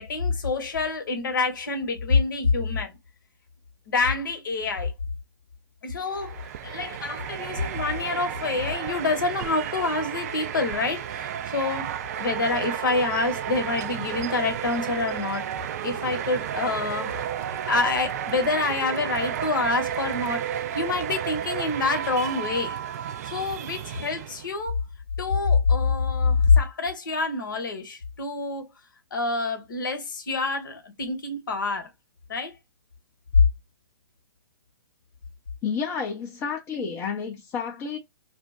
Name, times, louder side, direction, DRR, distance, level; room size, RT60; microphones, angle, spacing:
voice 1, 0.0-2.9 3.9-4.9 5.8-11.9 12.2-15.4 15.8-17.3 17.7-22.8 23.2-24.8 25.2-28.7 29.1-31.9 32.3-32.5, left 4 dB, 65° left, 1.0 m, -26 dB
sound 1, 6.1-24.5, right 9 dB, 45° right, 0.4 m, -32 dB
voice 2, 35.6-38.0, left 6 dB, 20° left, 0.6 m, -30 dB
2.5 x 2.1 x 3.5 m
figure-of-eight pair, 125°, 12 cm